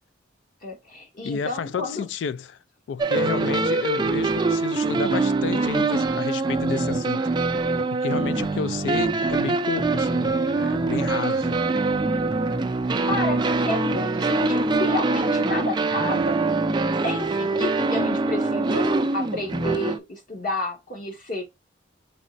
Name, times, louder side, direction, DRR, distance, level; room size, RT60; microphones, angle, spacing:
voice 1, 0.6-2.0 13.1-16.4 17.0-21.4, left 1 dB, 45° left, 1.7 m, -30 dB
voice 2, 1.2-2.6 2.9-7.3 7.9-11.6, left 6 dB, 75° left, 0.3 m, -31 dB
sound 1, 3.0-20.0, right 3 dB, 25° right, 0.3 m, -24 dB
4.1 x 4.1 x 2.5 m
head